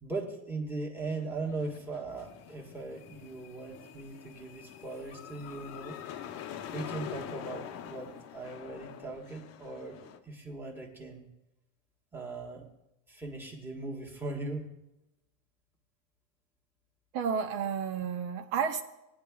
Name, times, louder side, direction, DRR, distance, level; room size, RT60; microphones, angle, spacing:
voice 1, 0.0-6.0 6.7-10.0 10.2-11.3 12.1-12.7 13.1-14.7, right 3 dB, 5° right, -1 dB, 1.4 m, -39 dB
sound 1, 1.0-10.2, left 10 dB, 35° left, 0.7 m, -45 dB
voice 2, 17.1-18.8, right 7 dB, 60° right, 6 dB, 1.0 m, -31 dB
18.0 x 9.6 x 2.3 m, 0.91 s
supercardioid pair, 140°, 45 cm